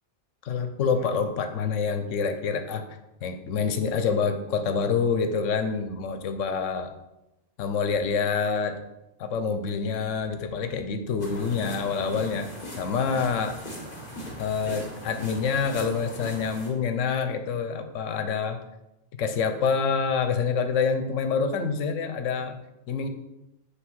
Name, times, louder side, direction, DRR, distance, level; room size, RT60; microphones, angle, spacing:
voice 1, 0.4-2.8 3.2-6.9 7.6-8.8 9.2-12.5 12.8-13.6 14.4-18.6 19.2-22.6 22.9-23.1, left 5 dB, 85° left, 8 dB, 1.0 m, -27 dB
sound 1, 11.2-16.7, equal, 35° left, 1.8 m, -39 dB
7.8 x 3.4 x 4.6 m, 0.94 s
omnidirectional pair, 1.3 m